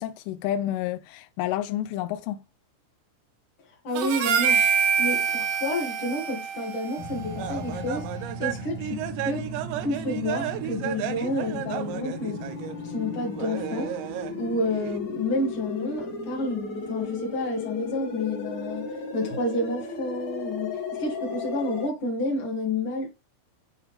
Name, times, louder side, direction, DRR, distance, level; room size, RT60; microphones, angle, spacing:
voice 1, 0.0-2.4, left 12 dB, 85° left, 3.1 m, -30 dB
voice 2, 3.8-4.6 5.0-9.4 9.8-12.4 12.8-13.9 14.3-23.1, left 1 dB, 70° left, 1.2 m, -30 dB
Harmonica, 4.0-8.4, right 7 dB, 70° right, 3.0 m, -26 dB
sound 1, 7.0-21.9, left 3 dB, 50° left, 2.6 m, -35 dB
sound 2, 7.4-12.8 13.3-14.3 14.6-15.0, right 12 dB, 90° right, 2.5 m, -34 dB
10.0 x 3.7 x 3.3 m
omnidirectional pair, 5.9 m